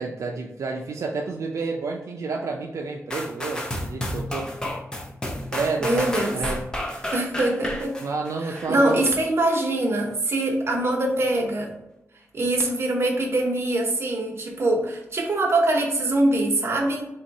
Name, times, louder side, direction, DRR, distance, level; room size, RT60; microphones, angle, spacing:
voice 1, 0.0-4.5 5.5-6.6 8.0-9.0, right 4 dB, 85° right, 1 dB, 0.4 m, -30 dB
sound 1, 3.1-8.9 9.5-9.6, left 1 dB, 15° left, 0.6 m, -31 dB
voice 2, 5.8-6.4 7.1-8.0 8.4-11.7 12.3-17.1, right 1 dB, 55° right, 1 dB, 0.9 m, -23 dB
3.4 x 2.7 x 4.0 m, 0.88 s
wide cardioid pair, 130°, 5 cm